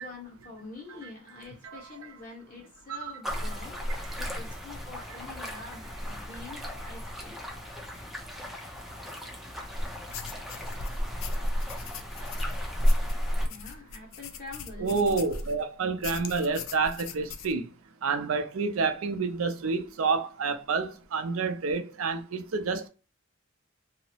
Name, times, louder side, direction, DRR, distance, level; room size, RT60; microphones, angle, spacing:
voice 1, 0.0-7.4 13.4-15.0, left 3 dB, 40° left, 1.2 m, -46 dB
sound 1, 3.2-13.5, equal, ahead, 0.5 m, -32 dB
sound 2, 10.1-15.6 16.0-17.5, left 4 dB, 65° left, 0.4 m, -41 dB
voice 2, 14.8-17.7 18.0-22.9, right 4 dB, 80° right, 0.5 m, -29 dB
2.7 x 2.0 x 2.7 m
head